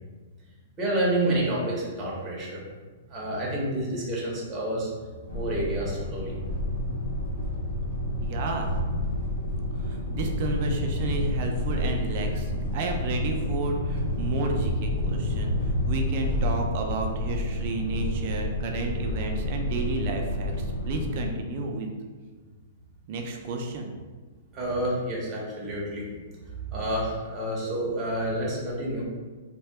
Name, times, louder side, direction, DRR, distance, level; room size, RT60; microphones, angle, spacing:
voice 1, 0.8-2.6 3.1-7.0 24.5-26.1 26.7-29.1, right 1 dB, 20° right, -5 dB, 0.7 m, -29 dB
sound 1, 5.3-21.3, left 1 dB, 80° left, 0.8 m, -29 dB
voice 2, 8.2-8.7 9.7-21.9 23.1-23.9, right 2 dB, 45° right, 2 dB, 0.4 m, -32 dB
2.7 x 2.2 x 3.3 m, 1.4 s
hypercardioid pair, 160°, 0 cm